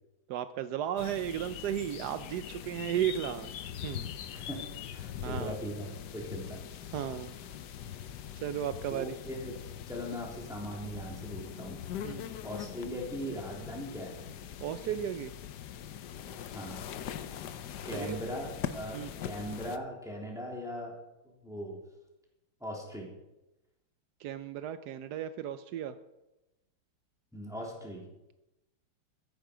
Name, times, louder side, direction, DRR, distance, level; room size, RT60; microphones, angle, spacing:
voice 1, 0.3-3.5 3.8-4.1 5.2-5.6 6.9-7.4 8.4-9.2 12.0-12.3 14.6-15.3 17.9-18.2 18.9-19.1 24.2-26.0, right 10 dB, 85° right, 12 dB, 0.9 m, -34 dB
sound 1, 1.0-19.8, left 10 dB, 65° left, 1.1 m, -42 dB
voice 2, 4.3-4.6 4.9-6.6 8.9-9.5 9.9-11.8 12.4-14.2 16.5-16.8 17.8-20.9 21.2-21.8 22.6-23.1 27.3-28.1, equal, ahead, -2 dB, 2.9 m, -39 dB
14.5 x 10.5 x 5.0 m, 0.97 s
omnidirectional pair, 2.4 m